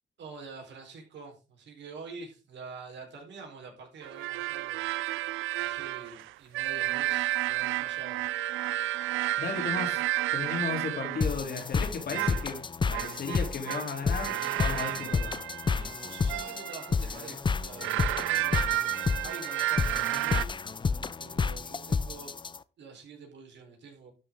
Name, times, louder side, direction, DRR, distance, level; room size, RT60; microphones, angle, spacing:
voice 1, 0.2-4.8 5.6-8.2 15.7-18.7 19.2-20.6 21.2-22.3 22.8-24.1, right 4 dB, 65° right, 1 dB, 4.0 m, -46 dB
sound 1, 4.0-11.3 12.1-12.5 12.9-17.1 17.6-20.4, right 16 dB, 85° right, 0.4 m, -31 dB
voice 2, 9.4-10.0 10.3-12.6 12.9-15.3, left 4 dB, 55° left, 3 dB, 3.2 m, -35 dB
sound 2, 11.2-22.6, left 5 dB, 25° left, 0.5 m, -31 dB
12.0 x 6.1 x 3.6 m, 0.32 s
cardioid pair, 90°, 20 cm